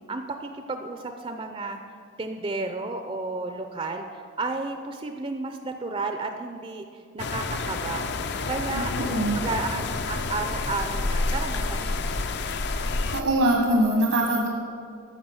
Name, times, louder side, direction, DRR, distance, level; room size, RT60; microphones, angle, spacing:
voice 1, 0.1-1.8 2.2-8.1 8.5-12.4, right 3 dB, 25° right, 6 dB, 0.5 m, -33 dB
sound 1, 7.2-13.2, left 3 dB, 50° left, 0.6 m, -29 dB
voice 2, 8.7-9.4 13.1-14.5, right 1 dB, 80° right, 1 dB, 1.3 m, -23 dB
13.5 x 5.7 x 7.1 m, 2.3 s
head